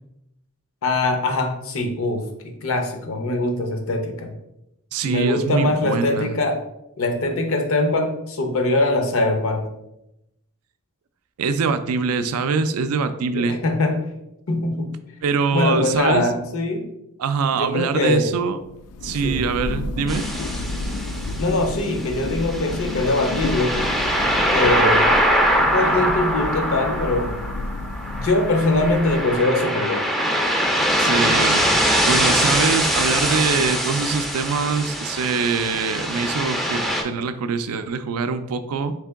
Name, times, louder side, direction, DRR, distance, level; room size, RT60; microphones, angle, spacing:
voice 1, 0.8-4.3 5.0-6.6 7.0-9.7 13.3-14.0 14.5-14.9 15.5-16.9 17.5-18.3 19.2-19.5 21.4-23.8 24.5-25.1 25.6-27.4 28.1-30.0, left 2 dB, 65° left, 5 dB, 0.7 m, -22 dB
voice 2, 4.9-6.4 11.4-13.6 15.2-16.3 17.2-18.6 19.0-20.3 25.8-26.2 31.0-31.6 31.9-38.9, right 5 dB, 75° right, 10 dB, 0.4 m, -23 dB
Thunder, 18.6-29.7, left 2 dB, 90° left, 0.3 m, -31 dB
sound 1, 20.1-37.0, equal, ahead, 0.4 m, -22 dB
3.6 x 3.3 x 3.4 m, 0.85 s
head